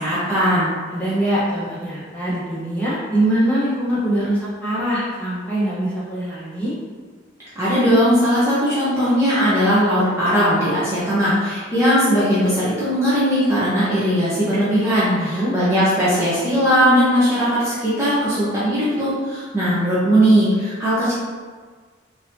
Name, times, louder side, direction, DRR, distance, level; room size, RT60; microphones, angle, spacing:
voice 1, 0.0-0.7 7.6-21.1, equal, 15° right, -12 dB, 0.8 m, -18 dB
voice 2, 0.9-6.7 15.1-15.5, right 1 dB, 10° left, -10 dB, 1.0 m, -23 dB
3.9 x 2.8 x 2.7 m, 1.5 s
head